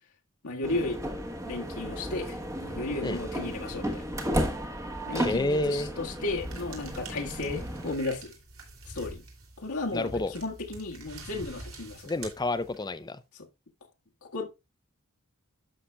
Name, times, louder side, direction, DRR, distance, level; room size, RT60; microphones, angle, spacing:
voice 1, 0.4-1.0 1.5-4.1 5.1-8.3 8.9-9.2 9.6-12.1 13.3-13.5 14.2-14.5, left 2 dB, 85° left, 1.7 m, -34 dB
sound 1, 0.6-7.9, equal, 15° right, 1.1 m, -34 dB
voice 2, 5.1-5.9 9.9-10.3 12.1-13.2, left 2 dB, 20° left, 0.5 m, -29 dB
sound 2, 6.4-13.0, right 2 dB, 70° right, 2.8 m, -45 dB
11.5 x 6.8 x 2.3 m
head